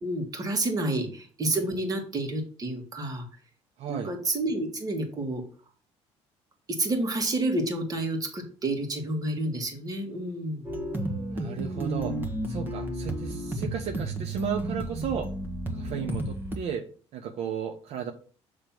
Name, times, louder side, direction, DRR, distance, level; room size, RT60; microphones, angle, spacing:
voice 1, 0.0-3.3 3.9-5.4 6.8-10.7 13.6-13.7, right 2 dB, 35° right, 4 dB, 1.7 m, -29 dB
voice 2, 3.8-4.1 11.3-12.1 12.5-15.3 15.7-16.8 17.1-18.1, right 8 dB, 65° right, 5 dB, 0.8 m, -34 dB
sound 1, 10.6-16.6, right 1 dB, 15° right, 1.2 m, -32 dB
7.1 x 3.2 x 5.9 m, 0.41 s
cardioid pair, 125°, 11 cm